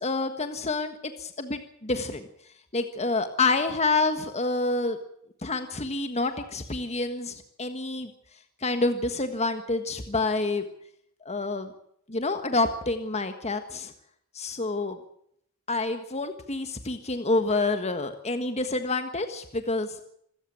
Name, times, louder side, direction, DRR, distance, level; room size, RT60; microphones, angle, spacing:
voice 1, 0.0-2.2 2.7-5.0 5.4-8.1 8.6-10.6 11.2-11.7 12.1-13.9 14.3-15.0 15.7-20.0, left 3 dB, 30° left, 8 dB, 1.5 m, -28 dB
26.0 x 14.5 x 8.6 m, 0.70 s
head